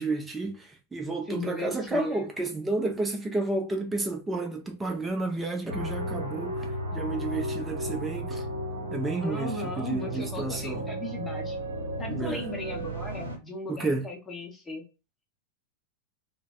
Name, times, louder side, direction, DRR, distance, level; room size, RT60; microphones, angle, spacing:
voice 1, 0.0-8.5 8.9-10.8 12.1-12.4 13.7-14.0, right 2 dB, 10° right, 0.6 m, -31 dB
voice 2, 1.3-2.3 9.2-11.6 12.0-14.8, left 2 dB, 10° left, 0.9 m, -37 dB
sound 1, 5.7-13.4, right 1 dB, 80° right, 0.7 m, -34 dB
2.5 x 2.2 x 2.3 m
figure-of-eight pair, 90°, 0 cm